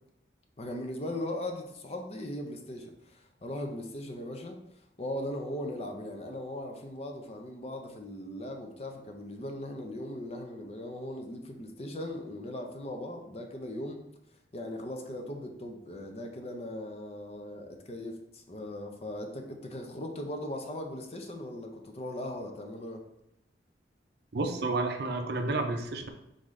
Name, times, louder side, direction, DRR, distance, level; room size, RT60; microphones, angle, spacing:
voice 1, 0.6-4.6 5.0-14.0 14.5-23.0, left 1 dB, 35° left, 4 dB, 0.5 m, -39 dB
voice 2, 24.3-26.1, right 2 dB, 60° right, 5 dB, 0.5 m, -30 dB
3.8 x 3.8 x 3.2 m, 0.82 s
head